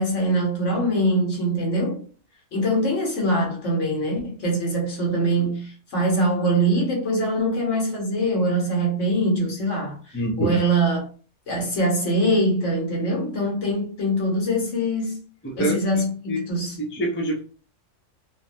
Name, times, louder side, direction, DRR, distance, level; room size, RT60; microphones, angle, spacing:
voice 1, 0.0-2.0 2.5-11.1 11.5-15.2 15.6-16.8, right 1 dB, 70° left, 1.4 m, -23 dB
voice 2, 10.1-10.7 15.4-15.8 16.3-16.5 16.8-17.4, right 1 dB, 15° left, 0.4 m, -25 dB
3.1 x 2.1 x 2.6 m
omnidirectional pair, 1.3 m